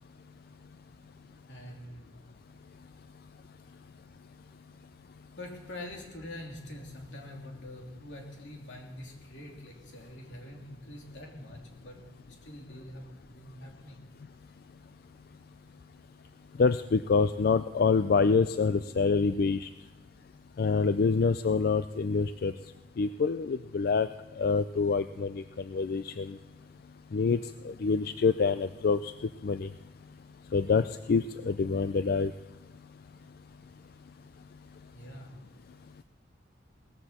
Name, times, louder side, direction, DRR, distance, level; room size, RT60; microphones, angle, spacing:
voice 1, 1.5-2.0 5.4-14.0 34.9-35.3, left 1 dB, 80° left, 0 dB, 3.0 m, -45 dB
voice 2, 16.6-19.7 20.6-22.5 23.0-24.1 24.4-26.4 27.1-27.4 27.6-29.1 29.4-29.7 30.5-32.3, left 4 dB, 55° left, 12 dB, 0.4 m, -26 dB
18.0 x 14.5 x 4.3 m, 1.1 s
head